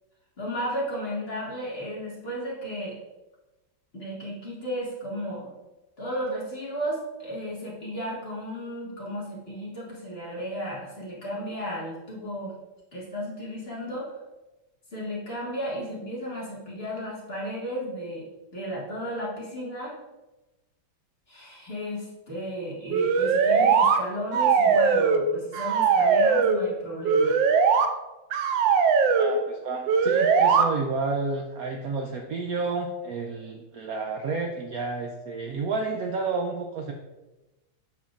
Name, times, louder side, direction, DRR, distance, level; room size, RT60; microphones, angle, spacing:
voice 1, 0.4-3.0 3.9-5.5 6.0-12.5 12.9-14.2 14.9-20.0 21.3-27.4, equal, 35° left, -5 dB, 1.8 m, -34 dB
sound 1, 22.9-24.0 24.3-25.3 25.5-26.6 27.0-27.9 28.3-29.3 29.9-30.6, right 6 dB, 85° right, 1.3 m, -20 dB
voice 2, 29.1-36.9, right 4 dB, 70° right, 2 dB, 0.9 m, -30 dB
8.2 x 5.8 x 2.4 m, 1.1 s
omnidirectional pair, 2.0 m